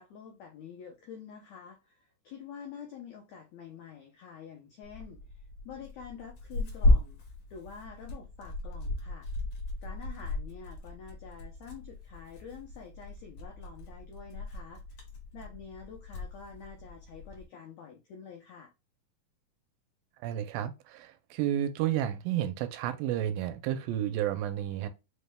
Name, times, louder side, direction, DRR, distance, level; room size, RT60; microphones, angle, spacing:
voice 1, 0.0-5.2 5.6-7.2 7.5-9.3 9.8-14.8 15.3-18.7, left 7 dB, 80° left, 1.6 m, -47 dB
Tearing, 4.8-17.4, left 1 dB, 55° left, 1.6 m, -34 dB
voice 2, 20.2-24.9, right 11 dB, 85° right, 2.2 m, -31 dB
5.3 x 3.3 x 2.2 m
omnidirectional pair, 4.1 m